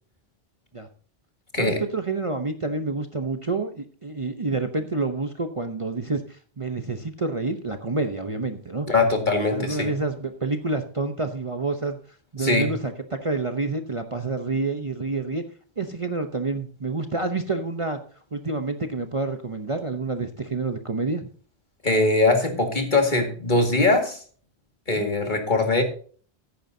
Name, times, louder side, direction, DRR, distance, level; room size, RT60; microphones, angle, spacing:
voice 1, 1.6-8.9 9.5-12.0 12.3-15.4 15.8-18.0 18.3-21.3 24.9-25.1, right 3 dB, 30° right, 6 dB, 0.9 m, -28 dB
voice 2, 8.9-9.9 12.4-12.7 21.8-24.2 24.9-25.8, left 2 dB, 45° left, 4 dB, 2.3 m, -21 dB
14.5 x 10.5 x 2.7 m, 0.43 s
omnidirectional pair, 1.1 m